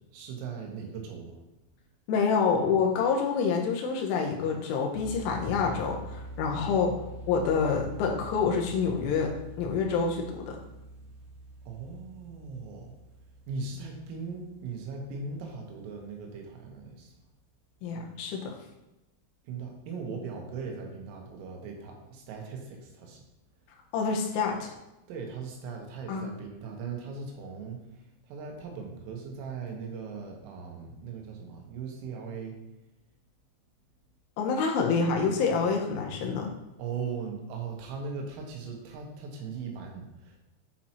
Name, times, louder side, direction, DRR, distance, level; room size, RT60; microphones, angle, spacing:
voice 1, 0.1-1.4 6.5-7.0 11.7-12.9 13.5-17.1 19.5-23.2 25.1-27.8 28.3-32.6 36.8-40.4, right 5 dB, 90° right, 1 dB, 3.9 m, -39 dB
voice 2, 2.1-6.9 7.3-9.3 9.6-10.6 17.8-18.5 23.9-24.7 26.1-26.3 34.4-36.5, left 5 dB, 85° left, 1 dB, 3.4 m, -27 dB
sound 1, 4.9-15.8, right 2 dB, 65° right, 3.3 m, -45 dB
9.0 x 4.4 x 4.3 m, 0.96 s
omnidirectional pair, 5.7 m